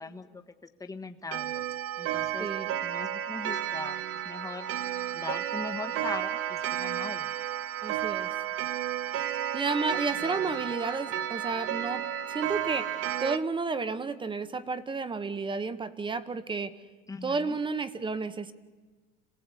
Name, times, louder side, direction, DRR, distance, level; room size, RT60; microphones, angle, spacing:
voice 1, 0.0-1.6 2.0-2.5 2.8-4.7 5.1-7.3 17.1-17.6, left 3 dB, 10° left, 6 dB, 1.3 m, -40 dB
Clock, 1.3-13.4, right 11 dB, 40° right, 1.0 m, -32 dB
voice 2, 2.4-2.7 7.8-8.3 9.5-12.9 13.2-16.7 17.2-18.5, right 4 dB, 15° right, 13 dB, 1.0 m, -32 dB
27.0 x 17.0 x 8.2 m, 1.3 s
supercardioid pair, 130°, 37 cm